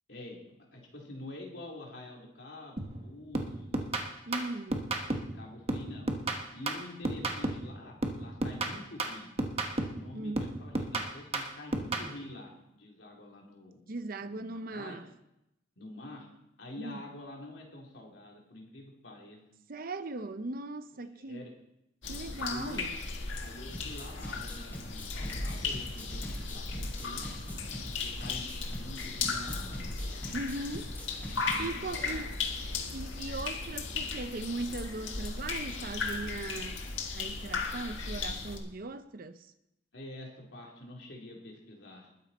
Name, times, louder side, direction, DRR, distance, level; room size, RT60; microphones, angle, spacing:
voice 1, 0.1-0.4 0.7-3.9 5.1-6.1 6.5-9.3 9.9-13.8 14.2-15.0 15.8-16.3 16.6-19.4 21.2-21.5 22.4-22.8 23.4-27.3 28.0-29.9 31.2-32.5 39.9-42.1, left 1 dB, 65° left, 3.4 m, -47 dB
sound 1, 2.8-3.0 3.3-5.4 5.7-7.7 8.0-10.1 10.4-12.1, right 2 dB, 30° right, 1.4 m, -33 dB
voice 2, 4.3-4.9 10.1-10.5 13.9-15.1 16.8-17.0 19.7-21.5 22.1-22.9 30.3-30.9 31.6-32.3 32.9-36.9 37.1-39.5, right 2 dB, 50° right, 0.7 m, -39 dB
sound 2, 22.0-38.6, left 4 dB, 90° left, 1.8 m, -36 dB
sound 3, 23.7-31.7, equal, 10° left, 5.1 m, -43 dB
20.5 x 9.4 x 4.3 m
head